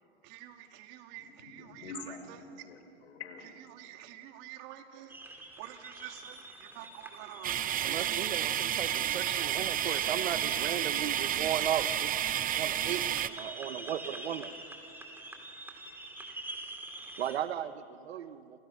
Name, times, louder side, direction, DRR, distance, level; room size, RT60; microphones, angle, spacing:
voice 1, 0.2-2.4 3.6-5.1 5.6-8.3, right 12 dB, 50° right, 6 dB, 2.7 m, -48 dB
voice 2, 1.2-3.5, left 4 dB, 90° left, 6 dB, 5.0 m, -46 dB
sound 1, 5.1-17.4, right 2 dB, 5° right, 4.0 m, -46 dB
sound 2, 7.4-13.3, right 11 dB, 25° right, 0.9 m, -31 dB
voice 3, 7.8-12.2 12.6-14.5 17.2-18.6, right 10 dB, 80° right, 13 dB, 1.4 m, -36 dB
29.5 x 28.5 x 6.6 m, 2.8 s
hypercardioid pair, 115°, 31 cm